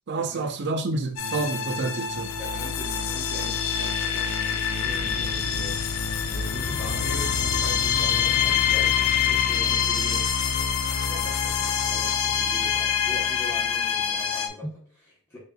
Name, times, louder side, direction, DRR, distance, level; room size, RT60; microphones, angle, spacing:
voice 1, 0.1-2.3, right 3 dB, 50° right, 0.5 m, -28 dB
sound 1, 1.2-14.5, left 7 dB, 80° left, 0.5 m, -25 dB
voice 2, 2.4-5.7 6.3-10.2 11.1-15.4, left 1 dB, 15° left, 1.0 m, -41 dB
Accelerating revving vroom, 4.8-11.7, left 2 dB, 45° left, 0.8 m, -40 dB
4.1 x 3.8 x 2.4 m
head